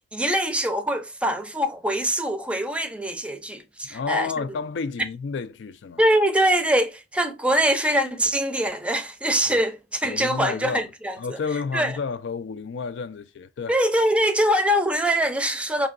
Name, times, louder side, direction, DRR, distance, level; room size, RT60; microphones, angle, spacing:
voice 1, 0.1-4.3 6.0-11.2 11.7-11.9 13.7-15.9, equal, 5° right, 0.5 m, -23 dB
voice 2, 3.9-6.0 9.5-9.6 10.0-10.9 11.2-13.7, left 5 dB, 75° left, 0.4 m, -31 dB
5.5 x 2.8 x 2.5 m
head